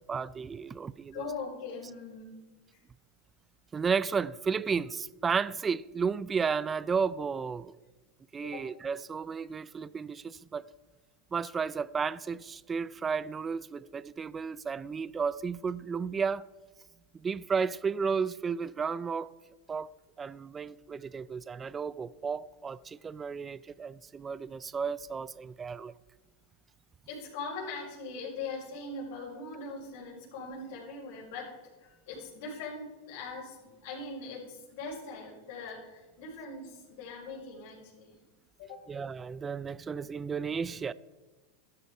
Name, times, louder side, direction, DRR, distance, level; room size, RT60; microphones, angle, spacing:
voice 1, 0.1-1.3 3.7-7.8 8.3-10.7 11.3-16.4 17.1-19.3 19.7-19.9 20.2-25.9 38.9-40.9, right 5 dB, 20° right, 0.4 m, -33 dB
voice 2, 1.1-2.4 8.4-8.7 27.1-31.5 31.8-38.2 38.6-38.9, left 3 dB, 65° left, 5.2 m, -41 dB
13.0 x 12.5 x 5.0 m
hypercardioid pair, 115°, 0 cm